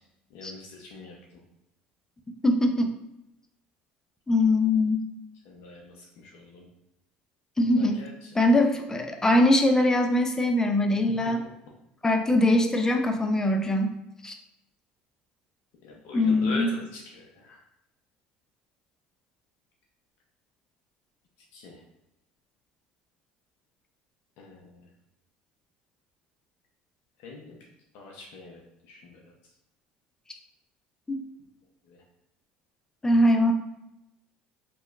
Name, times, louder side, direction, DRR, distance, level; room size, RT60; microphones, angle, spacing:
voice 1, 0.3-1.2 5.5-6.6 7.7-8.6 15.8-17.6 21.5-21.8 24.4-24.8 27.2-27.6 27.9-29.3 31.9-32.0, left 3 dB, 70° left, -1 dB, 0.5 m, -42 dB
voice 2, 2.4-3.0 4.3-5.1 7.6-8.0 8.3-11.5 12.0-14.0 14.2-14.4 16.1-16.7 33.0-33.5, left 1 dB, 15° left, 4 dB, 0.4 m, -22 dB
2.8 x 2.2 x 2.3 m, 0.89 s
hypercardioid pair, 75°, 4 cm